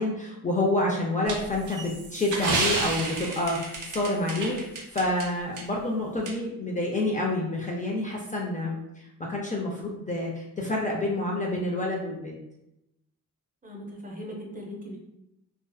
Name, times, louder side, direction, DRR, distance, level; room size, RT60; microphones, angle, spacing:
voice 1, 0.0-4.6 4.9-12.4, left 1 dB, 25° left, -2 dB, 0.4 m, -28 dB
sound 1, 1.3-5.3 5.6-5.7 6.3-6.4, right 3 dB, 65° right, 0.6 m, -31 dB
voice 2, 13.6-15.0, equal, 25° right, -1 dB, 0.6 m, -39 dB
2.6 x 2.3 x 2.2 m, 0.85 s
cardioid pair, 85°, 33 cm